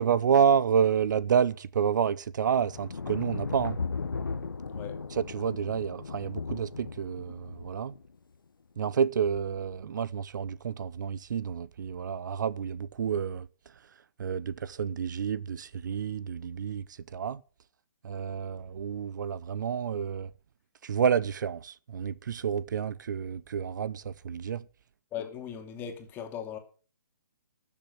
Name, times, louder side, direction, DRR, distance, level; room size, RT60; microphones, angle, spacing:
voice 1, 0.0-3.8 5.1-7.9 8.8-13.9 14.2-17.4 18.0-20.3 20.8-24.7, right 7 dB, 60° right, 0.7 m, -29 dB
sound 1, 2.6-8.1 9.2-9.5, left 4 dB, 90° left, 1.2 m, -37 dB
voice 2, 25.1-26.6, left 8 dB, 20° left, 2.5 m, -38 dB
13.0 x 7.1 x 7.9 m
hypercardioid pair, 145°, 11 cm